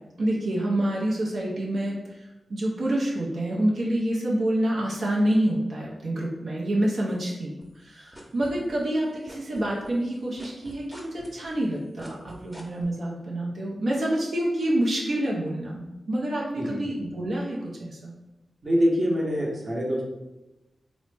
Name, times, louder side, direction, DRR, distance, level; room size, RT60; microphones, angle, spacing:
voice 1, 0.2-18.1, right 1 dB, 75° right, -4 dB, 0.6 m, -27 dB
sound 1, 7.6-9.0 9.3-12.8, equal, 5° right, 0.7 m, -46 dB
voice 2, 18.6-20.0, equal, 45° right, -2 dB, 0.8 m, -24 dB
3.0 x 2.0 x 3.2 m, 1.0 s
cardioid pair, 45°, 0 cm